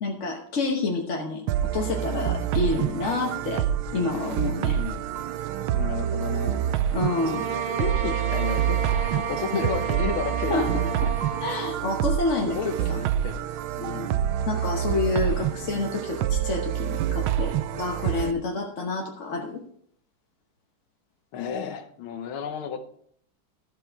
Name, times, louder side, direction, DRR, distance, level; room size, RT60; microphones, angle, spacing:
voice 1, 0.0-1.4 1.7-3.6 3.9-4.8 6.9-7.5 9.5-9.6 10.5-10.7 11.0-11.1 11.4-12.6 12.9-13.0 13.8-19.6, left 3 dB, 45° left, 1 dB, 1.2 m, -28 dB
sound 1, 1.5-18.3, right 10 dB, 90° right, 1.5 m, -27 dB
voice 2, 4.7-5.0 5.7-6.6 7.8-10.6 12.4-13.4 13.8-14.1 18.5-18.6 21.3-22.9, left 7 dB, 85° left, 9 dB, 1.8 m, -32 dB
sound 2, 6.9-11.8, right 6 dB, 70° right, 0.4 m, -32 dB
13.0 x 7.4 x 4.6 m, 0.63 s
omnidirectional pair, 2.2 m